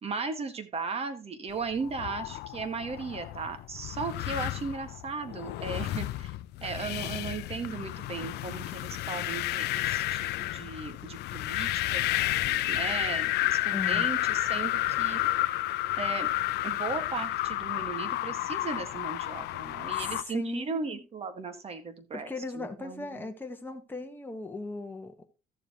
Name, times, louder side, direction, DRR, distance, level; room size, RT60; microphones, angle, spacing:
voice 1, 0.0-6.3 6.6-12.1 12.4-15.2 16.0-16.3 16.6-23.3, right 4 dB, 35° right, 8 dB, 1.8 m, -36 dB
sound 1, 1.7-20.2, left 16 dB, 80° left, 0.5 m, -31 dB
voice 2, 13.7-14.1 20.0-21.0 22.1-25.3, left 3 dB, 10° left, 4 dB, 1.4 m, -38 dB
14.0 x 7.0 x 3.0 m, 0.29 s
cardioid pair, 110°, 17 cm